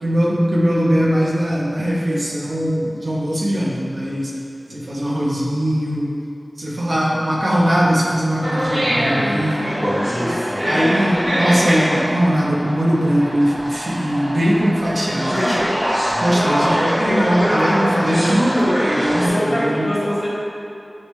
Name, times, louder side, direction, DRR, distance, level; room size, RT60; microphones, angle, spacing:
voice 1, 0.0-4.3 4.7-6.1 6.6-9.9 10.7-15.6 16.2-18.7 19.1-19.9, equal, 85° right, -6 dB, 0.7 m, -20 dB
sound 1, 8.4-19.3, equal, 40° right, 0.9 m, -22 dB
voice 2, 8.9-10.8 19.1-20.3, equal, 35° left, -7 dB, 1.1 m, -25 dB
sound 2, 14.7-17.2 17.6-17.7, equal, 20° right, 0.6 m, -32 dB
6.1 x 2.1 x 3.1 m, 2.7 s
wide cardioid pair, 60°, 0 cm